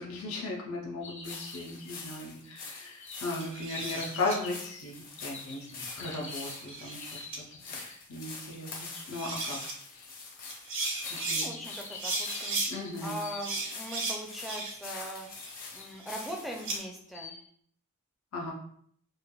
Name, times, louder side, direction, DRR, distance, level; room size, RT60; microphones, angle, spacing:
voice 1, 0.0-7.3 7.6-8.7 9.1-9.6 9.9-10.1 11.2-11.5 12.7-13.2 18.3-18.5, left 2 dB, 80° left, -2 dB, 0.6 m, -37 dB
sound 1, 1.0-8.0 8.9-9.0 10.4-14.1 14.6-14.7 15.3-16.0 16.6-17.4, left 4 dB, 60° left, 0.9 m, -46 dB
sound 2, 1.2-16.8, left 4 dB, 45° left, 0.6 m, -45 dB
sound 3, 3.3-4.4 5.9-7.0 7.3-7.4 8.8-8.9 9.1-9.7 10.5-11.5 12.0-12.7 13.4-14.9 15.3-16.8, right 3 dB, 60° right, 0.6 m, -35 dB
voice 2, 11.3-12.6 13.0-15.3 15.7-17.3, equal, ahead, 0 dB, 0.4 m, -40 dB
3.2 x 2.2 x 2.2 m, 0.62 s
head